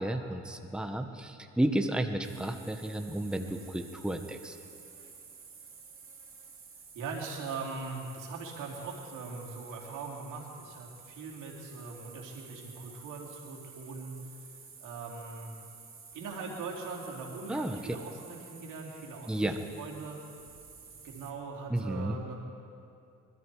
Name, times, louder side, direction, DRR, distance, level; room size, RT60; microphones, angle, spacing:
voice 1, 0.0-4.5 17.5-18.0 19.3-19.6 21.7-22.2, right 1 dB, 5° right, 5 dB, 1.0 m, -32 dB
sound 1, 2.2-21.3, right 5 dB, 45° right, 2.6 m, -52 dB
voice 2, 6.9-15.6 16.1-20.2 21.0-22.4, right 4 dB, 90° right, -1 dB, 2.6 m, -41 dB
22.0 x 13.0 x 4.7 m, 2.6 s
cardioid pair, 90°, 30 cm